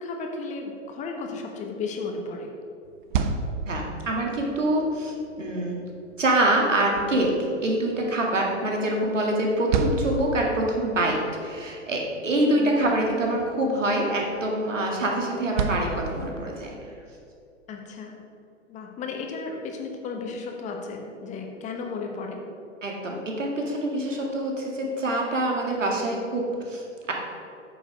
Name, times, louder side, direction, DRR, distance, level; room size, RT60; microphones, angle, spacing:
voice 1, 0.0-2.5 12.5-12.8 17.7-18.2 18.7-22.4, left 4 dB, 20° left, 2 dB, 1.1 m, -34 dB
sound 1, 2.8-16.8, right 5 dB, 40° right, 0.7 m, -34 dB
voice 2, 3.7-5.8 6.2-16.7 22.8-27.1, right 1 dB, 75° right, 0 dB, 2.1 m, -25 dB
8.6 x 7.0 x 4.9 m, 2.6 s
figure-of-eight pair, 110°, 38 cm